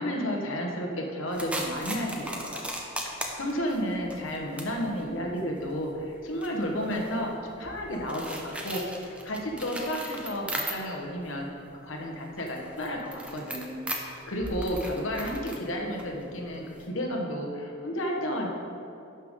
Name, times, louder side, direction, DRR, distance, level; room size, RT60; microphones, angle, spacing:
voice 1, 0.0-2.8 3.4-11.5 11.8-13.8 14.3-18.5, equal, 75° left, 0 dB, 1.2 m, -32 dB
sound 1, 1.3-11.1 11.5-16.9, right 1 dB, 5° right, 0.7 m, -39 dB
11.0 x 5.8 x 3.7 m, 2.7 s
head